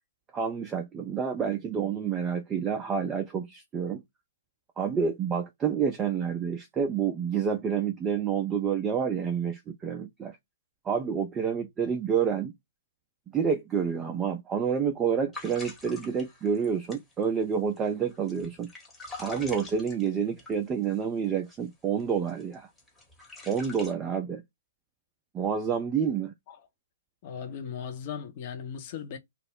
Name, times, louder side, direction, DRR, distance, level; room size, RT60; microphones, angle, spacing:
voice 1, 0.3-4.0 4.8-10.4 10.8-12.5 13.3-18.7 19.2-22.7 23.5-24.4 25.3-26.3, right 7 dB, 15° right, 0.4 m, -28 dB
sound 1, 15.3-21.0 21.5-21.7 22.0-23.9, left 3 dB, 10° left, 0.9 m, -45 dB
voice 2, 27.2-29.2, left 7 dB, 35° left, 0.7 m, -37 dB
2.3 x 2.0 x 3.6 m
figure-of-eight pair, 125°, 0 cm